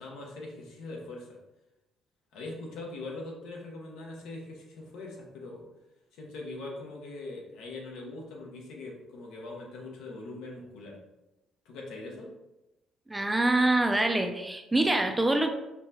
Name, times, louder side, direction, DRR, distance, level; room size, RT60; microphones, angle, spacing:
voice 1, 0.0-1.4 2.3-5.6 6.1-11.0 11.6-12.3, left 2 dB, 85° left, -1 dB, 0.9 m, -42 dB
voice 2, 13.1-15.5, right 2 dB, 10° right, 6 dB, 0.4 m, -25 dB
5.6 x 2.2 x 2.8 m, 0.98 s
cardioid pair, 100°, 0 cm